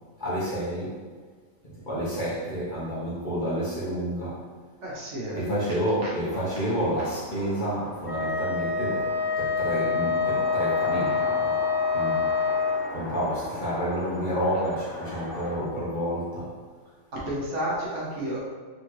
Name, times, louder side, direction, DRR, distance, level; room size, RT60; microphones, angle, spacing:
voice 1, 0.2-1.0 1.6-4.4 5.3-11.6 11.9-12.2 12.9-16.6, equal, 35° left, -9 dB, 1.3 m, -29 dB
voice 2, 4.8-5.5 6.0-6.1 17.1-18.4, right 1 dB, 60° right, -5 dB, 1.3 m, -31 dB
sound 1, 6.2-15.6, left 1 dB, 65° left, 1.4 m, -39 dB
Wind instrument woodwind instrument, 8.0-12.9, left 5 dB, 10° right, 0.9 m, -26 dB
4.1 x 3.7 x 3.1 m, 1.6 s
omnidirectional pair, 1.4 m